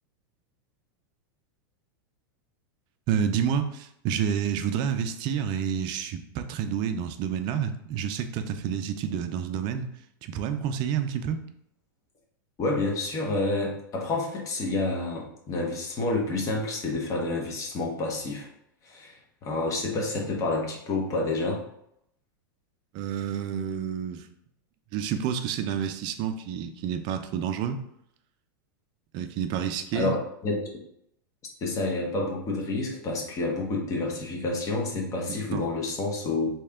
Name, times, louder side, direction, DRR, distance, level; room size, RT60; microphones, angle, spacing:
voice 1, 3.1-9.9 10.2-11.4 22.9-24.2 24.9-27.8 29.1-30.1 35.3-35.6, right 8 dB, 40° right, 8 dB, 0.4 m, -29 dB
voice 2, 12.6-18.5 18.8-21.6 29.9-30.2 30.4-30.7 31.6-36.5, left 2 dB, 30° left, -1 dB, 1.0 m, -29 dB
3.2 x 2.9 x 3.6 m, 0.74 s
supercardioid pair, 130°, 11 cm